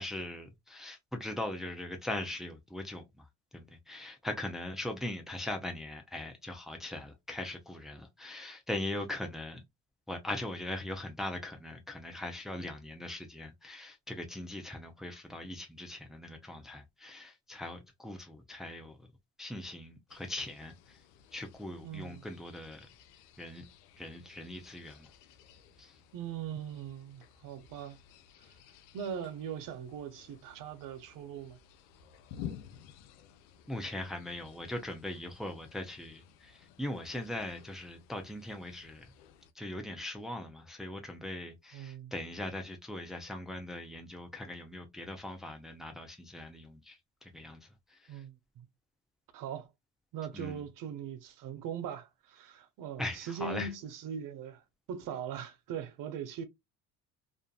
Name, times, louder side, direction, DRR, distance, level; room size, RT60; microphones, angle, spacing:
voice 1, 0.0-3.3 3.5-9.6 10.1-19.0 19.4-21.0 21.3-22.9 23.4-23.6 24.0-25.1 25.8-25.9 33.7-39.1 39.5-47.6 47.9-48.2 50.3-50.6 53.0-53.7, left 1 dB, ahead, 0.7 m, -40 dB
sound 1, 20.1-39.5, left 9 dB, 90° left, 0.5 m, -53 dB
voice 2, 21.8-22.2 26.1-28.0 28.9-31.6 41.7-42.1 48.1-48.7 49.3-49.7 50.1-54.6 54.9-56.4, right 7 dB, 65° right, 0.8 m, -40 dB
2.5 x 2.5 x 2.3 m
supercardioid pair, 85°, 36 cm